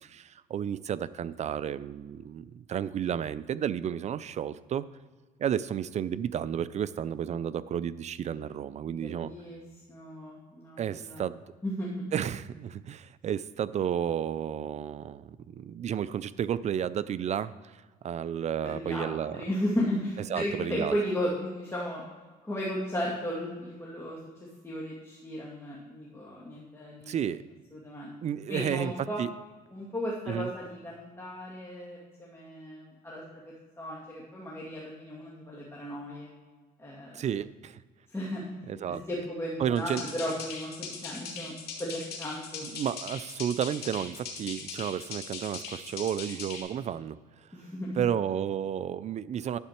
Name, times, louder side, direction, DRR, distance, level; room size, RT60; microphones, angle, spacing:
voice 1, 0.0-4.8 5.4-9.3 10.8-11.4 12.1-19.4 20.3-21.0 27.1-27.4 28.2-28.9 29.2-29.3 30.3-30.5 37.1-37.8 38.7-39.0 39.6-40.0 42.6-47.5 48.0-49.6, right 9 dB, 45° right, 16 dB, 0.4 m, -32 dB
voice 2, 8.9-9.6 9.9-11.2 11.6-12.0 18.6-22.0 22.4-24.3 24.6-27.2 27.7-28.1 28.5-29.2 29.7-36.3 36.8-37.2 38.1-38.5 38.9-42.7 47.5-48.0, equal, 15° left, -5 dB, 2.1 m, -35 dB
sound 1, 39.8-46.6, left 5 dB, 70° left, 2.2 m, -40 dB
11.5 x 7.8 x 4.4 m, 1.3 s
cardioid pair, 110°, 17 cm